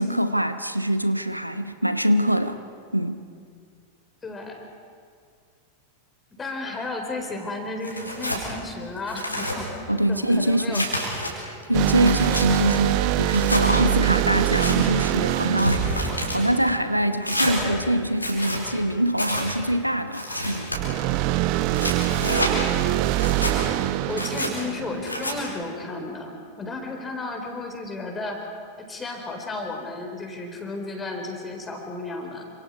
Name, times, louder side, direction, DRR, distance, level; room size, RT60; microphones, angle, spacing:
voice 1, 0.0-2.6 2.9-3.2 9.9-10.9 11.4-15.9 16.2-20.7, equal, 90° right, 11 dB, 0.9 m, -24 dB
voice 2, 4.2-4.6 6.4-9.7 10.1-11.1 21.9-22.5 23.4-28.4 28.8-32.5, left 2 dB, 15° left, 3 dB, 4.2 m, -33 dB
Tearing, 7.8-8.4 9.0-9.6 10.1-11.3 11.8-12.5 13.3-13.6 14.3-14.8 15.4-16.4 17.2-17.6 18.1-18.6 19.1-19.5 20.1-20.8 21.5-22.5 23.1-23.5 24.1-24.5 25.1-25.3, equal, 85° left, 4.5 m, -28 dB
sound 1, 11.7-17.2 20.7-25.5, right 14 dB, 45° right, 0.8 m, -24 dB
28.5 x 26.5 x 4.8 m, 2.2 s
figure-of-eight pair, 90°, 0 cm